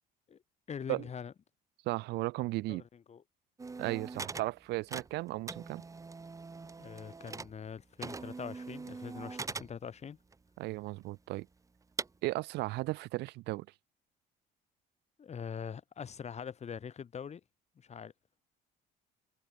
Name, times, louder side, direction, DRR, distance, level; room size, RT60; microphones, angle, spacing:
voice 1, 0.7-1.3 2.7-3.2 6.8-10.2 15.2-17.4 17.8-18.1, left 7 dB, 40° left, 7.1 m, -43 dB
voice 2, 1.8-2.8 3.8-5.8 10.6-11.5 12.2-13.7, right 19 dB, 85° right, 1.1 m, -35 dB
sound 1, 3.6-4.5 4.8-7.7 8.0-9.8 10.3-10.4 11.0-11.1 12.0-12.1, right 4 dB, 20° right, 1.0 m, -42 dB
cardioid pair, 110°, 17 cm